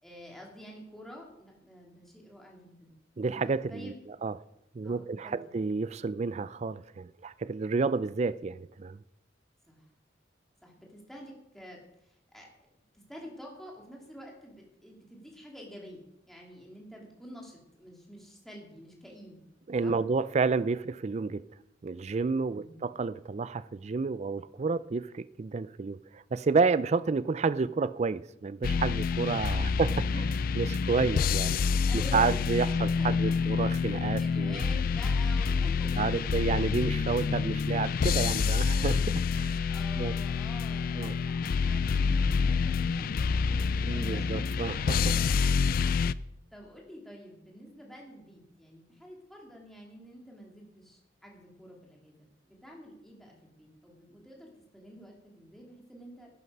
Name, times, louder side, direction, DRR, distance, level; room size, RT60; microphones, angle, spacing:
voice 1, 0.0-2.9 3.7-4.0 4.8-5.4 9.7-9.8 10.6-12.5 12.9-19.5 19.8-20.0 22.5-22.8 29.5-29.8 30.1-30.2 31.9-33.4 34.2-36.2 39.6-44.3 46.5-56.3, equal, ahead, 2.6 m, -48 dB
voice 2, 3.2-3.9 4.2-4.3 4.7-9.0 19.7-21.4 21.8-29.9 30.2-30.3 30.5-31.6 32.1-34.6 36.0-39.6 40.0-40.2 41.0-41.1 42.8-42.9 43.8-45.3, right 4 dB, 40° right, 0.4 m, -30 dB
sound 1, 28.6-46.1, left 5 dB, 50° left, 0.3 m, -27 dB
11.5 x 9.3 x 5.4 m
head